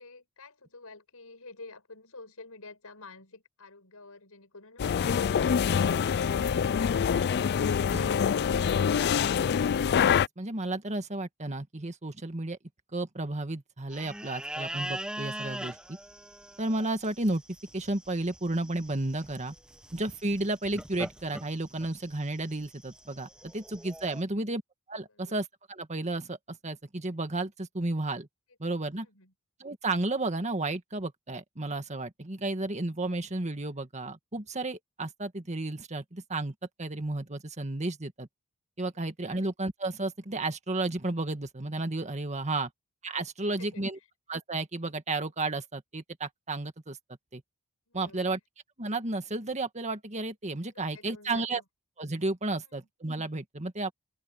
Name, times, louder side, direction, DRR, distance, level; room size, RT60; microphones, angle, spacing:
voice 1, 0.0-7.5 23.9-24.5 25.1-25.4 28.9-29.3 38.9-39.0 39.3-39.4 43.4-44.1 47.9-48.4 50.7-51.6 52.6-52.8, left 3 dB, 70° left, 7.0 m, -51 dB
sound 1, 4.8-10.3, left 7 dB, 50° left, 0.3 m, -25 dB
voice 2, 10.4-12.6 12.9-15.8 16.6-17.4 17.7-19.5 19.9-24.6 24.9-28.3 28.6-29.1 29.6-36.5 36.8-38.3 38.8-42.7 43.0-44.0 44.3-47.0 47.3-47.4 47.9-48.4 48.8-51.6 52.0-53.9, right 2 dB, 30° right, 1.8 m, -32 dB
sound 2, 13.9-24.2, right 1 dB, 5° right, 0.9 m, -42 dB
open air
head